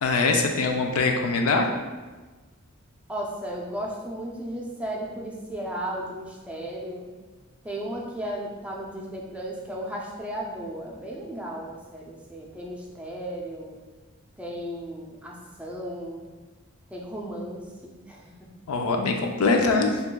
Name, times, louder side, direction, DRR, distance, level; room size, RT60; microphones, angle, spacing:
voice 1, 0.0-1.7 18.7-20.0, left 3 dB, 80° left, 3 dB, 0.5 m, -23 dB
voice 2, 3.1-7.1 7.6-13.8 14.4-16.3 16.9-18.2, right 1 dB, 5° right, -2 dB, 0.4 m, -35 dB
6.7 x 2.3 x 2.2 m, 1.3 s
head